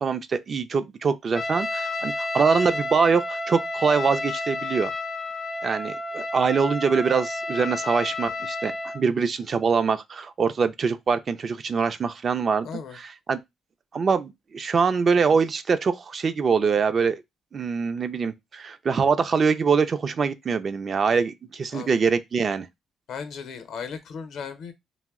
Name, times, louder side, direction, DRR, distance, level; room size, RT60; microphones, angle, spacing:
voice 1, 0.0-4.9 5.6-12.7 12.9-13.4 13.9-17.2 17.5-22.7, right 5 dB, 45° right, 0.3 m, -24 dB
Trumpet, 1.3-9.0, left 2 dB, 25° left, 0.4 m, -31 dB
voice 2, 12.6-13.0 21.7-21.9 23.1-24.7, left 6 dB, 70° left, 0.6 m, -36 dB
2.6 x 2.0 x 3.5 m
cardioid pair, 90°, 0 cm